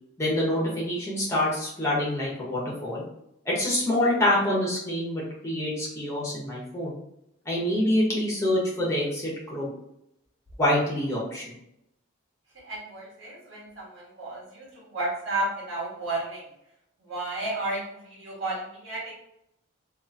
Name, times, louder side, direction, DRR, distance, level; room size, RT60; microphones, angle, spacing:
voice 1, 0.2-3.0 3.5-6.9 7.5-9.7 10.6-11.5, left 1 dB, 15° left, -5 dB, 0.8 m, -26 dB
voice 2, 12.6-16.5 17.0-19.1, right 2 dB, 65° right, -5 dB, 1.3 m, -32 dB
2.9 x 2.4 x 2.5 m, 0.79 s
head